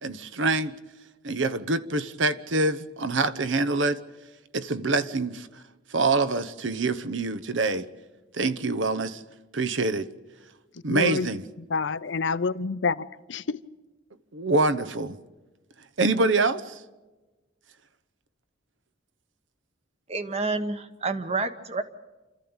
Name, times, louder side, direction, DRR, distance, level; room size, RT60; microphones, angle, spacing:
voice 1, 0.0-0.7 1.2-4.0 4.5-5.5 5.9-7.9 8.3-9.2 9.5-10.1 10.8-11.4 14.3-15.2 16.0-16.8, right 3 dB, 70° right, 1.0 m, -25 dB
voice 2, 10.9-11.3 11.7-13.6, left 4 dB, 65° left, 0.6 m, -28 dB
voice 3, 20.1-21.8, right 3 dB, 30° right, 1.1 m, -29 dB
28.0 x 13.5 x 8.9 m
head